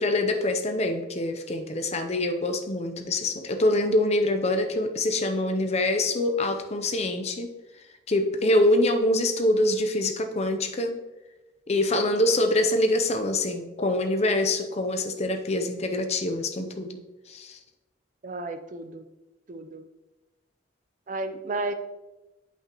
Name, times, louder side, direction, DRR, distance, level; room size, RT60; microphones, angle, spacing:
voice 1, 0.0-7.5 8.1-11.0 11.7-17.0 17.3-17.6, left 1 dB, 35° left, 6 dB, 0.6 m, -25 dB
voice 2, 18.2-19.0 19.5-19.8 21.1-21.7, right 2 dB, 45° right, 8 dB, 0.5 m, -33 dB
8.3 x 5.7 x 3.0 m, 1.1 s
head